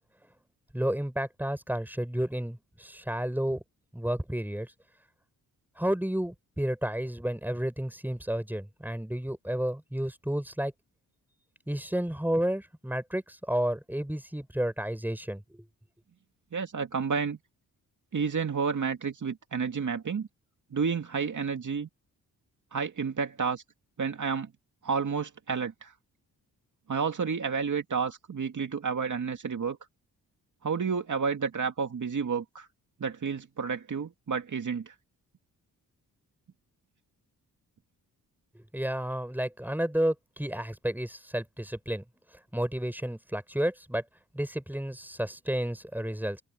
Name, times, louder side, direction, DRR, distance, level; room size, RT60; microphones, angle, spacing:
voice 1, 0.7-3.6 3.9-4.7 5.8-10.7 11.7-15.6 38.5-42.0 42.5-44.0 44.3-46.4, right 1 dB, 5° right, 6.2 m, -31 dB
voice 2, 16.5-17.4 18.1-20.3 20.7-21.9 22.7-23.6 24.0-24.5 24.8-25.9 26.9-29.8 30.6-32.7 33.0-34.9, right 5 dB, 50° right, 2.3 m, -30 dB
open air
supercardioid pair, 55°, 38 cm